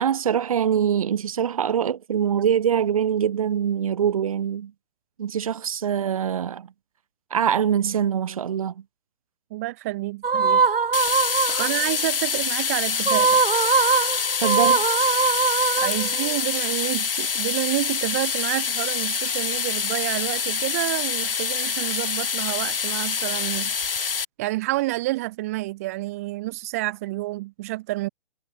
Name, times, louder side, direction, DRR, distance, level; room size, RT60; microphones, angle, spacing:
voice 1, 0.0-4.7 5.2-6.7 7.3-8.8 11.5-11.6 14.4-14.8, right 8 dB, 35° right, 2.7 m, -23 dB
voice 2, 9.5-10.7 11.6-13.4 15.8-23.7 24.4-28.1, right 19 dB, 15° right, 1.5 m, -29 dB
sound 1, 10.2-11.9 13.0-16.4, right 5 dB, 70° right, 2.5 m, -21 dB
sound 2, 10.9-24.2, left 6 dB, 70° left, 1.5 m, -26 dB
hypercardioid pair, 165°, 29 cm